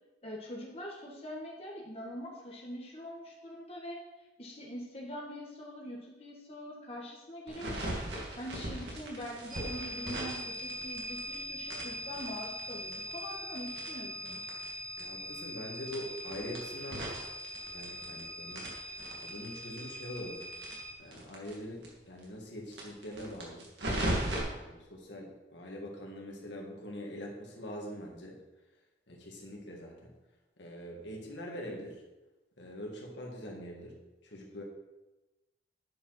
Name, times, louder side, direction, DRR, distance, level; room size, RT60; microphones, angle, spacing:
voice 1, 0.2-4.0 4.4-14.4, equal, 35° left, -3 dB, 1.7 m, -43 dB
sound 1, 7.5-11.3 11.7-14.7 15.0-15.1 15.3-15.4 15.8-18.2 18.5-21.5 21.8-21.9 22.2-22.3 22.7-24.4, right 1 dB, 70° right, 2.5 m, -38 dB
sound 2, 9.5-20.9, equal, 50° right, 2.3 m, -42 dB
voice 2, 15.0-17.2 17.7-18.7 19.2-20.5 21.0-23.7 24.1-28.4 29.1-30.1 30.6-32.0 32.6-34.0 34.2-34.6, equal, 75° left, -1 dB, 2.1 m, -43 dB
9.9 x 5.4 x 5.9 m, 1.1 s
head